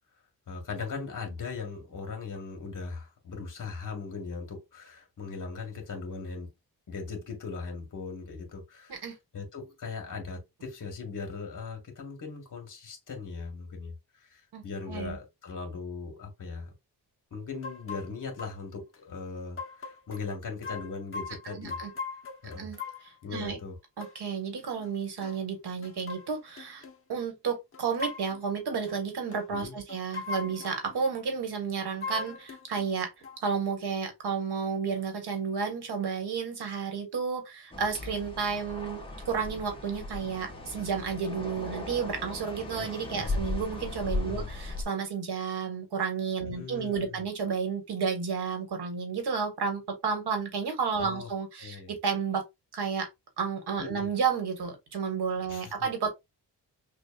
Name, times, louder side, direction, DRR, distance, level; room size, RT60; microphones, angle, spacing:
voice 1, 0.5-6.5 6.9-9.1 9.3-13.9 14.2-16.7 17.3-21.8 22.4-22.7 23.2-23.8 29.5-29.8 42.7-42.9 43.2-43.3 44.1-44.5 46.5-47.2 51.0-51.3 51.6-51.9 53.8-54.1 55.5-55.9, left 4 dB, 50° left, 1.8 m, -39 dB
sound 1, 17.6-18.1 18.4-18.5 18.9-19.0 19.6-20.2 20.6-23.1 24.0-24.2 24.7-24.9 25.2-25.4 25.8-27.0 27.7-28.4 28.8-29.0 29.3-29.5 29.9-31.0 32.0-32.9 33.2-33.4, left 4 dB, 35° left, 1.0 m, -40 dB
voice 2, 21.4-21.9 22.6-23.6 24.0-26.8 27.1-33.1 33.4-52.4 52.7-53.1 53.4-56.1, right 6 dB, 75° right, 1.6 m, -32 dB
sound 2, 37.7-44.8, left 2 dB, 15° left, 1.3 m, -37 dB
6.2 x 2.6 x 2.4 m
wide cardioid pair, 130°, 40 cm